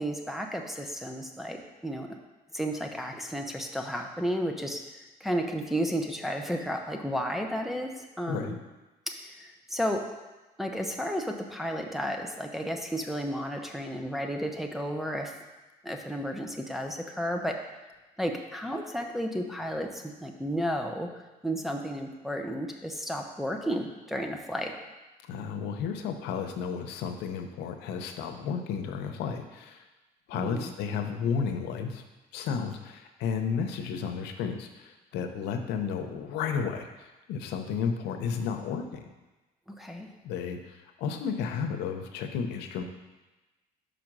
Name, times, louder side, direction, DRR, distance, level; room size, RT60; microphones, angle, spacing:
voice 1, 0.0-2.2 2.5-4.8 5.2-8.5 9.1-10.0 10.6-15.4 15.8-17.6 18.2-24.7 30.3-30.7 39.7-40.1, equal, ahead, 1 dB, 0.8 m, -33 dB
voice 2, 25.3-29.8 30.3-32.0 32.3-39.0 40.2-42.8, left 6 dB, 90° left, 5 dB, 0.7 m, -32 dB
5.3 x 5.1 x 6.0 m, 1.1 s
cardioid pair, 110°, 17 cm